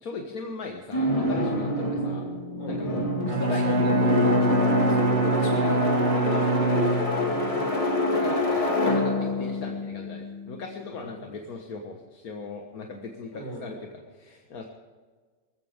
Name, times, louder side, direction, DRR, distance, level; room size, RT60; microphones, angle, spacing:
voice 1, 0.0-2.3 2.7-3.9 5.6-5.8 6.1-7.1 8.1-13.8 14.1-14.7, left 4 dB, 80° left, 2 dB, 1.8 m, -38 dB
sound 1, 0.9-10.9, left 1 dB, 25° left, 2.0 m, -27 dB
Bowed string instrument, 3.2-7.5, right 1 dB, 65° right, 1.9 m, -24 dB
voice 2, 3.3-4.2 4.5-6.2 7.2-7.7 11.2-11.3 13.3-13.9, equal, 55° left, -2 dB, 5.8 m, -38 dB
19.5 x 15.5 x 3.6 m, 1.5 s
omnidirectional pair, 1.5 m